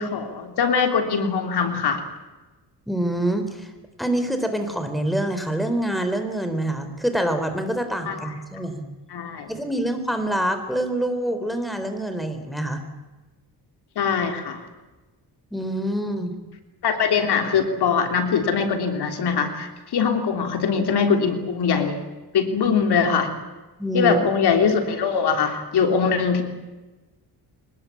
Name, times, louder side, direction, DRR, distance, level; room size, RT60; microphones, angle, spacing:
voice 1, 0.0-2.0 8.1-8.3 9.1-9.5 14.0-14.6 16.8-22.0 22.3-23.3 23.9-26.4, left 6 dB, 75° left, 5 dB, 3.5 m, -22 dB
voice 2, 2.9-3.7 4.0-8.8 9.5-12.8 15.5-16.3 23.8-24.2, right 1 dB, ahead, 7 dB, 3.9 m, -26 dB
24.5 x 21.0 x 8.6 m, 1.2 s
cardioid pair, 110°, 40 cm